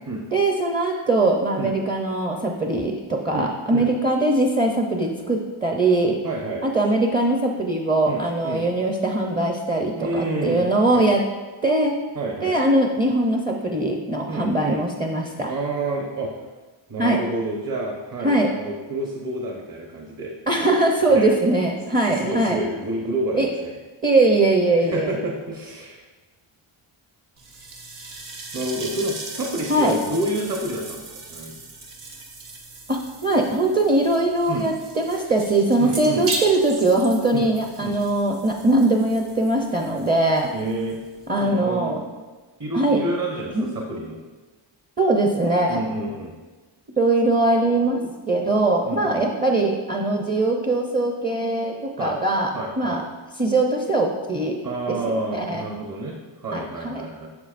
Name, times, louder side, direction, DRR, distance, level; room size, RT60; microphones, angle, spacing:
voice 1, 0.3-6.2 6.6-11.2 11.6-11.9 12.4-15.5 17.0-17.2 18.2-18.5 20.5-22.6 23.3-23.5 24.0-25.2 29.7-30.0 32.9-40.5 41.3-42.0 42.7-43.0 43.5-43.7 45.0-45.8 47.0-53.1 53.4-54.7 55.1-55.6 56.5-57.0, right 2 dB, 20° right, 1 dB, 0.6 m, -21 dB
voice 2, 3.3-3.9 6.2-6.7 8.1-8.6 9.9-11.1 12.2-12.6 14.3-14.8 15.4-16.3 16.9-20.3 21.1-21.3 22.1-23.7 24.8-26.0 28.5-31.6 34.5-34.7 35.8-36.3 37.3-37.5 37.8-38.0 40.5-41.0 41.4-42.0 42.6-44.2 45.7-46.3 48.8-49.2 52.0-52.2 52.5-53.0 54.6-57.3, right 2 dB, 40° right, -1 dB, 1.0 m, -29 dB
sound 1, 27.4-41.6, right 2 dB, 80° right, 1.4 m, -38 dB
9.6 x 6.5 x 2.5 m, 1.3 s
wide cardioid pair, 130°, 50 cm